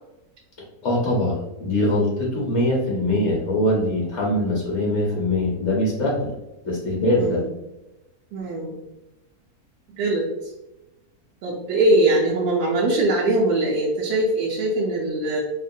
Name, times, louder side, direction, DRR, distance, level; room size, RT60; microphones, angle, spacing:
voice 1, 0.8-6.3 6.6-7.4, left 1 dB, 55° left, -3 dB, 0.9 m, -22 dB
voice 2, 7.2-7.5 8.3-8.8 10.0-10.3 11.4-15.4, right 2 dB, 85° right, -5 dB, 1.1 m, -21 dB
3.0 x 2.1 x 2.6 m, 0.96 s
omnidirectional pair, 1.6 m